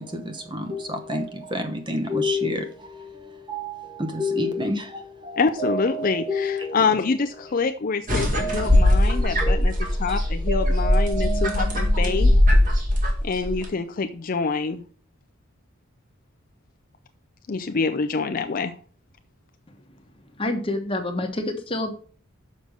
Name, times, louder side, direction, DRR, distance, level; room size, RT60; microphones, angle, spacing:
voice 1, 0.0-6.8 8.4-10.2 10.5-12.4, left 1 dB, 20° right, 1.0 m, -30 dB
voice 2, 5.4-12.3 13.2-14.8 17.5-18.7, left 4 dB, 40° left, 0.4 m, -26 dB
sound 1, 8.1-13.6, left 1 dB, 40° right, 2.0 m, -20 dB
voice 3, 20.4-21.9, left 1 dB, 25° left, 1.1 m, -27 dB
6.6 x 5.1 x 6.2 m
head